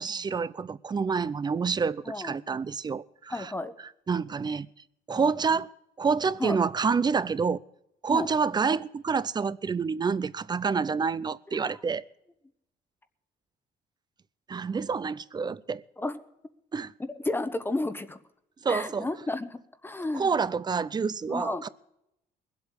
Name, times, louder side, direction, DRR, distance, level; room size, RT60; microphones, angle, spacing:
voice 1, 0.0-3.5 4.1-4.7 5.1-5.7 6.0-7.6 8.0-12.0 14.5-15.8 16.7-16.9 18.6-19.1 20.1-21.7, right 5 dB, 25° right, 0.6 m, -28 dB
voice 2, 3.3-3.7 5.1-5.2 6.4-6.6 8.1-8.3 16.0-16.2 17.1-18.2 18.7-19.6 19.8-20.3 21.3-21.7, left 2 dB, 15° left, 1.0 m, -32 dB
21.5 x 8.2 x 6.5 m
cardioid pair, 110°, 17 cm